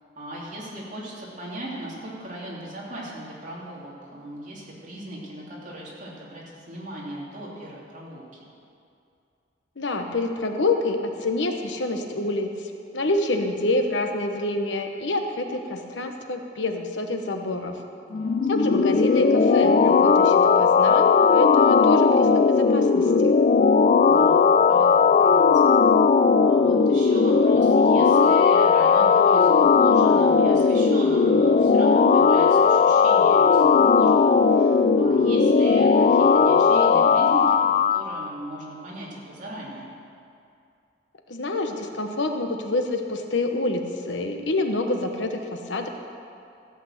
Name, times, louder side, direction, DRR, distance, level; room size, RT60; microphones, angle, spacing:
voice 1, 0.2-8.5 18.1-18.7 24.0-25.8 26.2-39.9, right 1 dB, 45° right, -5 dB, 2.8 m, -37 dB
voice 2, 9.8-17.8 18.5-23.4 41.3-45.9, left 2 dB, 80° left, 5 dB, 1.1 m, -27 dB
sound 1, 18.1-38.0, left 5 dB, 40° left, 0.4 m, -17 dB
14.5 x 6.0 x 7.8 m, 2.5 s
head